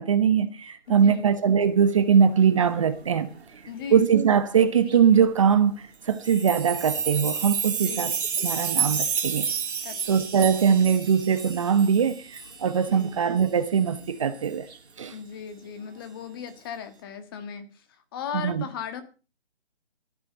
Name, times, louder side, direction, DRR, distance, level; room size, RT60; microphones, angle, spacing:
voice 1, 0.0-3.3 3.9-9.5 10.1-14.6 15.0-15.2 18.3-18.7, right 7 dB, 30° right, 1.0 m, -22 dB
voice 2, 0.9-1.3 3.7-4.1 7.7-8.1 9.8-10.2 12.9-13.1 15.1-17.6 18.1-19.0, left 7 dB, 20° left, 1.6 m, -37 dB
sound 1, 0.9-16.7 17.4-17.5, right 5 dB, 70° right, 3.6 m, -45 dB
sound 2, 6.1-12.9 13.4-13.5 13.8-13.9 14.4-14.5, right 7 dB, 55° right, 2.7 m, -30 dB
14.5 x 10.0 x 6.7 m
hypercardioid pair, 165°, 33 cm